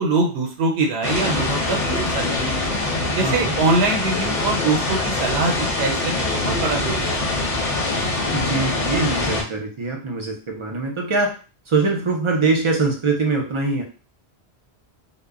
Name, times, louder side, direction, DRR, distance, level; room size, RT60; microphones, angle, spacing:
voice 1, 0.0-2.7 3.1-7.5, right 3 dB, 90° right, 1 dB, 0.9 m, -23 dB
sound 1, 1.0-9.4, left 2 dB, 40° left, 0.7 m, -24 dB
voice 2, 3.0-3.6 8.3-11.4 11.7-13.8, right 3 dB, 50° right, 1 dB, 0.3 m, -23 dB
2.1 x 2.0 x 3.5 m, 0.35 s
omnidirectional pair, 1.1 m